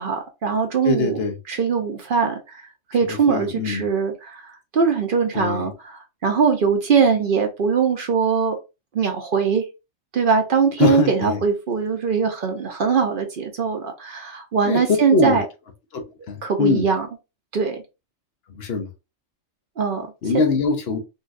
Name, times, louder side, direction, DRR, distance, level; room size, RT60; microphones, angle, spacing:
voice 1, 0.0-8.5 8.9-9.6 10.1-15.4 16.4-17.1 17.5-17.8 19.8-20.1 20.3-20.4, right 6 dB, 55° right, 0.7 m, -21 dB
voice 2, 0.8-1.3 3.3-3.9 5.3-5.6 10.8-11.4 14.7-14.8 15.1-15.4 15.9-16.9 18.6-18.9 20.2-21.0, left 4 dB, 65° left, 0.9 m, -22 dB
3.9 x 2.3 x 2.5 m
omnidirectional pair, 1.2 m